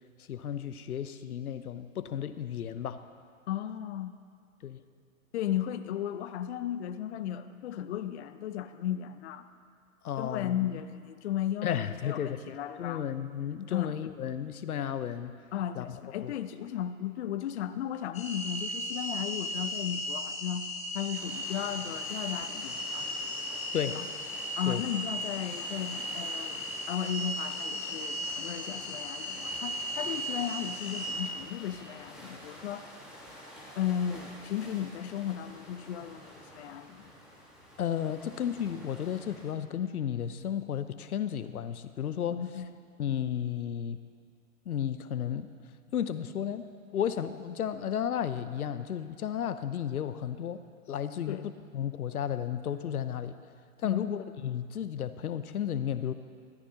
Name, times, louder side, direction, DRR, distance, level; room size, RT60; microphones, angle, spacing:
voice 1, 0.3-3.0 4.6-4.8 10.0-10.6 11.6-12.4 12.8-15.3 15.7-16.0 16.2-16.3 23.7-24.0 24.7-24.8 37.8-42.4 43.0-44.0 44.7-45.5 45.9-50.6 50.9-51.4 51.7-53.3 53.8-56.1, left 9 dB, 90° left, 12 dB, 0.6 m, -33 dB
voice 2, 3.5-4.1 5.3-9.5 10.2-13.0 13.7-13.9 15.5-20.7 20.9-23.1 23.9-24.0 24.6-32.9 33.8-37.0 42.3-42.7 51.3-51.5 53.8-54.1, left 10 dB, 50° left, 11 dB, 0.6 m, -35 dB
sound 1, 18.1-31.1, equal, 15° left, 1.5 m, -36 dB
sound 2, 21.2-39.5, equal, ahead, 1.5 m, -49 dB
13.5 x 13.5 x 2.9 m, 2.1 s
hypercardioid pair, 130°, 43 cm